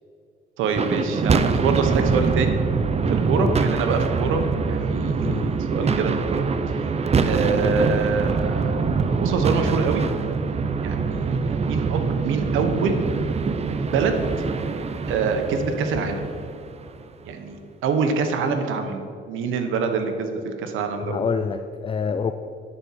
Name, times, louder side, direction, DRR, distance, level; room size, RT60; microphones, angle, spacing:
voice 1, 0.6-2.6 3.1-6.9 7.2-10.0 10.8-13.0 13.8-14.2 15.1-16.2 17.3-21.2, right 5 dB, 85° right, 6 dB, 1.0 m, -25 dB
sound 1, 0.7-17.1, right 5 dB, 30° right, 0.6 m, -24 dB
voice 2, 21.1-22.3, left 5 dB, 25° left, 9 dB, 0.4 m, -26 dB
9.8 x 4.3 x 7.3 m, 2.4 s
cardioid pair, 90°, 20 cm